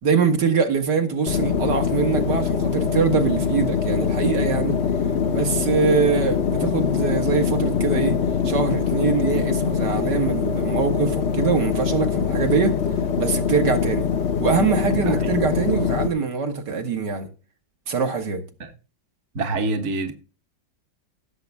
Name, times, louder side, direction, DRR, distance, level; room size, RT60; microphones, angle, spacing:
voice 1, 0.0-4.8 5.3-8.2 8.4-12.8 13.2-14.1 14.4-17.3 17.9-18.4, right 5 dB, 65° right, 2.3 m, -23 dB
sound 1, 1.3-16.1, left 6 dB, 45° left, 1.0 m, -23 dB
voice 2, 14.9-15.4 18.6-18.7 19.3-20.1, right 2 dB, 40° right, 1.5 m, -26 dB
16.5 x 7.3 x 3.5 m
omnidirectional pair, 2.0 m